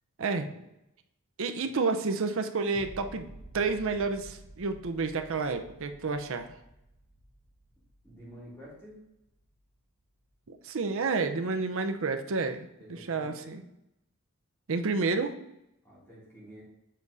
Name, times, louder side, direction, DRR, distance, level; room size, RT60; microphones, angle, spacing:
voice 1, 1.4-6.5 10.5-13.6 14.7-15.3, right 4 dB, 65° right, 7 dB, 0.6 m, -30 dB
sound 1, 2.7-9.8 10.2-10.3, right 1 dB, 25° left, 1.5 m, -52 dB
voice 2, 8.0-9.0 12.8-13.6 15.8-16.6, equal, 10° left, -7 dB, 2.4 m, -49 dB
7.6 x 4.0 x 4.8 m, 0.85 s
head